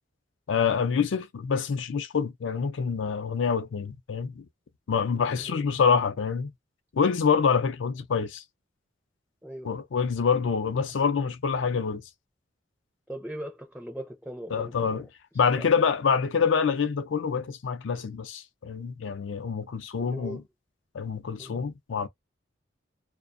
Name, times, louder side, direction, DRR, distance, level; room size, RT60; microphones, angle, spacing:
voice 1, 0.5-4.5 4.9-6.5 6.9-8.4 9.6-12.0 14.5-15.1 15.4-20.4 20.9-22.1, left 6 dB, 75° left, 0.4 m, -26 dB
voice 2, 9.4-9.8 13.1-15.1 15.5-15.7 20.0-20.4 21.4-21.6, right 1 dB, 5° right, 0.4 m, -40 dB
2.3 x 2.2 x 2.5 m
head